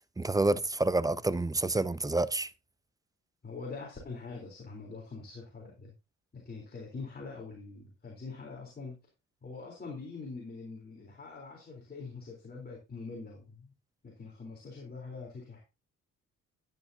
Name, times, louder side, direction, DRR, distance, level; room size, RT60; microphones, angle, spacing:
voice 1, 0.2-2.5, right 2 dB, 10° right, 0.6 m, -28 dB
voice 2, 3.4-5.9 6.3-9.0 9.4-13.7 14.0-15.6, left 4 dB, 30° left, 4.0 m, -44 dB
12.5 x 9.7 x 2.8 m
cardioid pair, 90°, 30 cm